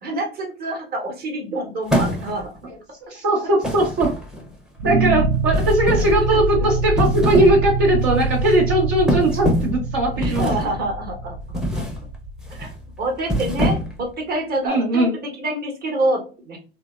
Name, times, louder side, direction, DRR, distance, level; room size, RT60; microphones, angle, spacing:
voice 1, 0.0-2.5 6.3-6.7 10.2-11.2 11.7-11.8 12.5-12.7 13.0-16.6, right 1 dB, 30° right, 1 dB, 0.9 m, -26 dB
sound 1, 1.9-2.6 3.6-4.5 5.5-6.2 6.8-7.6 8.0-8.2 9.1-9.8 10.2-10.8 11.5-12.0 12.4-12.7 13.2-14.1, equal, ahead, 0.5 m, -24 dB
voice 2, 3.0-4.1 4.8-10.5 14.6-15.1, right 1 dB, 60° right, 0 dB, 0.8 m, -19 dB
sound 2, 4.8-13.9, right 3 dB, 90° right, 0.5 m, -25 dB
2.7 x 2.0 x 2.3 m, 0.35 s
hypercardioid pair, 80°, 31 cm